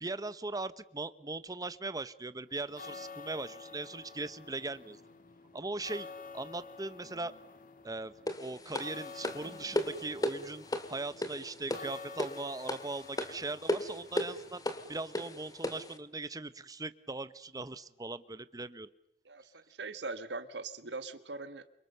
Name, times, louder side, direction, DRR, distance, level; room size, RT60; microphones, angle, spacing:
voice 1, 0.0-5.0 5.5-6.1 6.3-7.3 7.8-8.1 8.4-14.6 14.9-18.9, right 2 dB, 20° right, 14 dB, 1.1 m, -39 dB
sound 1, 2.5-16.1, left 4 dB, 50° left, 2.8 m, -50 dB
sound 2, 8.3-16.0, left 1 dB, 20° left, 2.2 m, -36 dB
voice 2, 19.2-21.8, right 3 dB, 85° right, 11 dB, 1.6 m, -41 dB
28.5 x 25.0 x 6.8 m, 0.79 s
head